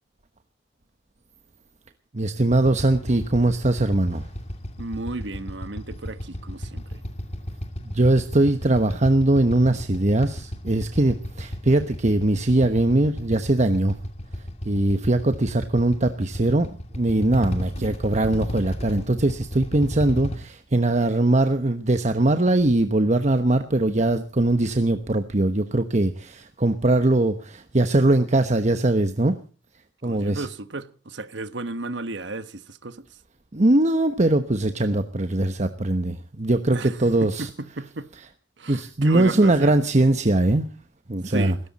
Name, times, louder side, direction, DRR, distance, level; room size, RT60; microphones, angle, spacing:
voice 1, 2.1-4.3 7.8-14.0 14.6-29.4 30.0-30.5 33.5-37.5 38.7-40.7 41.1-41.5, right 2 dB, 40° right, 1.1 m, -21 dB
Motorcycle / Idling, 2.5-20.4, equal, 40° left, 2.7 m, -34 dB
voice 2, 4.8-7.0 17.8-18.0 30.0-33.2 36.7-38.1 38.6-39.7 41.2-41.6, right 2 dB, 75° right, 1.3 m, -34 dB
20.5 x 17.0 x 4.2 m
head